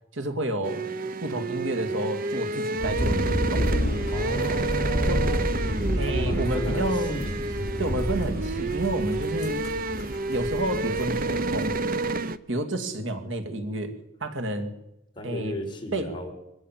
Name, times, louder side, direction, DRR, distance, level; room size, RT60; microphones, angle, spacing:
voice 1, 0.1-0.9 1.2-3.8 4.5-4.6 5.0-5.2 6.0-7.2 7.8-9.7 10.3-11.8 12.5-13.9 14.2-14.7 15.2-15.6 15.9-16.1, right 1 dB, 75° right, 7 dB, 2.4 m, -30 dB
sound 1, 0.6-12.4, right 3 dB, 50° right, 0.8 m, -29 dB
sound 2, 2.8-11.8, equal, 55° left, 5.0 m, -30 dB
voice 2, 4.1-5.4 6.1-7.4 15.2-16.3, equal, 25° left, 2 dB, 4.9 m, -34 dB
23.0 x 16.5 x 7.6 m, 0.89 s
head